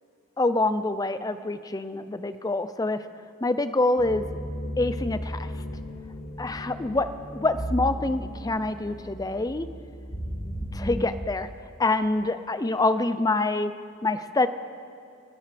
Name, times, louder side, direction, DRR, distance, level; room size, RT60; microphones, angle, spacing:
voice 1, 0.4-3.0 3.4-4.4 4.8-5.5 6.4-9.7 10.7-11.5 11.8-13.7 14.0-14.5, left 2 dB, 20° left, 11 dB, 0.5 m, -26 dB
sound 1, 4.0-11.0, equal, 50° left, 2.2 m, -35 dB
28.0 x 13.0 x 3.4 m, 2.5 s
head